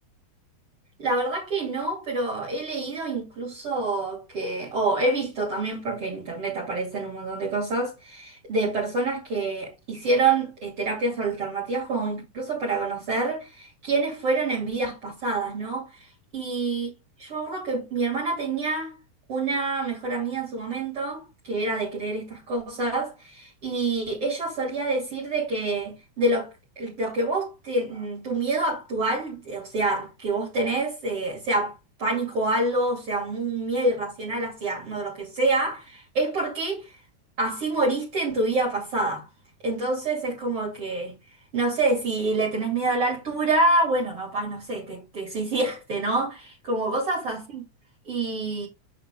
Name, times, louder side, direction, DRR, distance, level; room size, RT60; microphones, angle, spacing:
voice 1, 1.0-16.9 17.2-19.0 19.3-26.5 26.8-37.0 37.4-39.3 39.6-41.2 41.5-47.6 48.0-48.7, right 2 dB, 45° right, 3.3 m, -27 dB
6.9 x 5.8 x 3.6 m
omnidirectional pair, 3.8 m